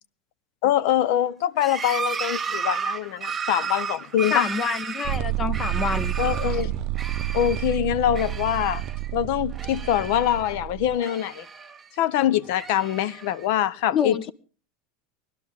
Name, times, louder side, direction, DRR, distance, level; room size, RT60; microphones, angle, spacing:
voice 1, 0.6-4.5 6.2-6.7 7.3-8.8 9.1-11.5 12.0-14.3, left 11 dB, 65° left, 0.7 m, -24 dB
sound 1, 1.6-6.7 6.9-7.8 8.1-9.1 9.4-10.6 11.0-11.9 12.4-13.5, right 5 dB, 15° right, 1.6 m, -33 dB
voice 2, 4.3-6.1 13.9-14.2, left 6 dB, 25° left, 0.7 m, -27 dB
sound 2, 5.0-11.0, right 14 dB, 50° right, 0.6 m, -29 dB
19.0 x 12.0 x 3.6 m
supercardioid pair, 135°, 0 cm